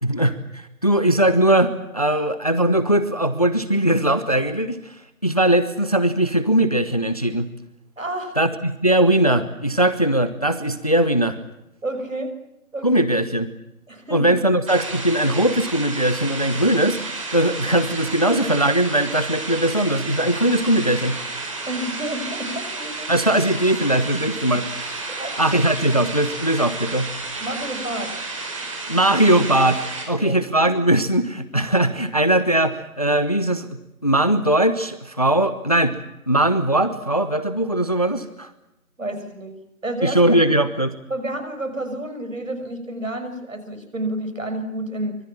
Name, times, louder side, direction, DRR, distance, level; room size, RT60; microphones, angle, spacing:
voice 1, 0.0-5.0 5.2-7.5 8.4-11.4 12.8-13.5 14.1-21.2 23.1-27.1 28.9-33.7 34.0-35.9 36.3-38.5 40.0-40.9, right 1 dB, 25° left, 12 dB, 1.0 m, -20 dB
voice 2, 8.0-8.3 11.8-12.3 12.7-13.1 13.9-14.3 21.7-23.1 25.2-25.4 27.4-28.2 30.2-30.4 39.0-40.2 41.1-45.2, right 1 dB, 60° right, 8 dB, 6.2 m, -30 dB
sound 1, 14.7-30.0, right 3 dB, 20° right, 4.7 m, -32 dB
25.5 x 25.0 x 7.3 m, 0.86 s
figure-of-eight pair, 165°, 44 cm